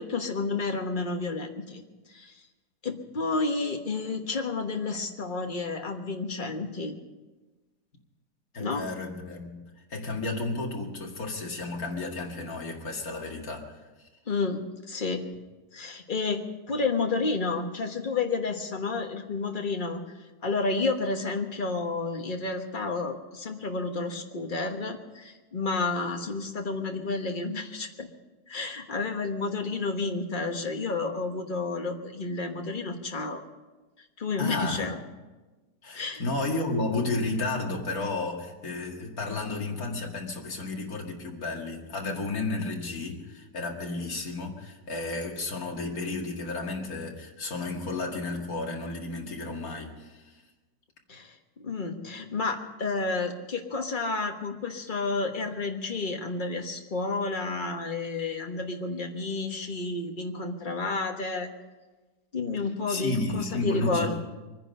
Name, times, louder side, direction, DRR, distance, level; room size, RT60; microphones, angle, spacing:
voice 1, 0.0-1.8 2.1-2.3 2.8-7.0 8.6-8.9 14.3-15.2 15.7-20.0 20.4-28.1 28.5-33.4 34.2-35.0 35.9-36.2 51.1-61.5 62.3-64.3, left 3 dB, 30° left, 4 dB, 1.4 m, -31 dB
voice 2, 8.5-13.8 34.4-34.9 35.8-50.4 62.9-64.2, left 2 dB, 60° left, 0 dB, 2.5 m, -32 dB
24.0 x 10.0 x 5.5 m, 1.2 s
omnidirectional pair, 1.8 m